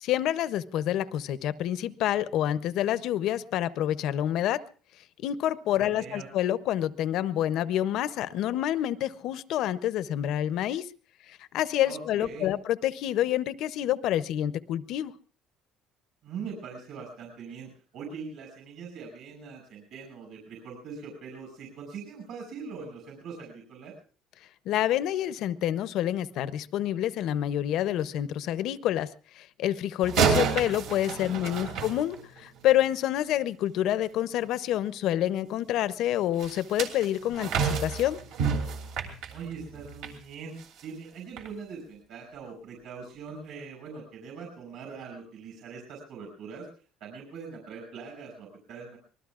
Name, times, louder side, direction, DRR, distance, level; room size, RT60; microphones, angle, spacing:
voice 1, 0.0-4.6 5.2-10.9 11.3-15.1 24.7-29.1 29.3-38.2, left 12 dB, 60° left, 15 dB, 0.6 m, -28 dB
voice 2, 5.8-6.3 11.8-12.5 16.2-24.0 31.1-31.7 39.3-40.5 40.8-46.7 47.0-49.0, right 5 dB, 60° right, 1 dB, 5.7 m, -42 dB
sound 1, 30.0-32.6 36.4-40.2 40.6-40.8 41.4-41.5, right 6 dB, 75° right, 2.8 m, -29 dB
25.5 x 20.0 x 2.4 m, 0.40 s
cardioid pair, 165°, 0 cm